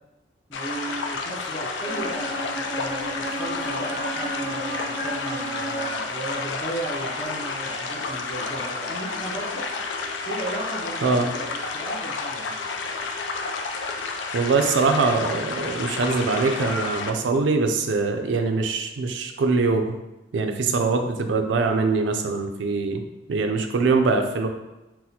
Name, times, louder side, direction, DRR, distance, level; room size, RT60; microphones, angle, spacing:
sound 1, 0.5-17.1, left 4 dB, 80° left, 0.4 m, -31 dB
voice 1, 0.5-9.7 10.2-12.6, right 1 dB, 15° left, -8 dB, 0.5 m, -35 dB
Bowed string instrument, 1.8-6.1, right 2 dB, 60° left, 0.9 m, -34 dB
Telephone, 3.4-5.9 6.9-7.6 9.5-10.5 12.5-13.6 15.6-16.8, right 1 dB, 35° left, 1.0 m, -40 dB
voice 2, 14.3-20.0 20.3-23.0 23.3-24.5, right 4 dB, 80° right, 6 dB, 0.4 m, -23 dB
4.0 x 2.1 x 2.8 m, 1.0 s
head